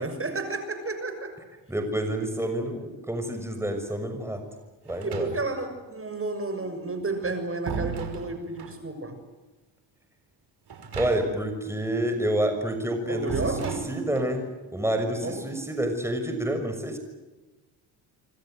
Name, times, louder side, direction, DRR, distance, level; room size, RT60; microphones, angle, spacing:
voice 1, 0.0-1.4 5.0-9.2 13.1-13.9 15.2-15.5, right 3 dB, 25° right, 9 dB, 6.6 m, -31 dB
voice 2, 1.7-4.4 4.8-5.3 11.0-14.4 14.7-17.0, right 1 dB, 5° right, 6 dB, 6.2 m, -28 dB
sound 1, 4.9-5.7 7.0-8.8 10.7-11.5 11.8-11.9 13.3-14.4, right 6 dB, 50° right, 5.7 m, -36 dB
27.0 x 26.0 x 8.0 m, 1.1 s
supercardioid pair, 65°, 50 cm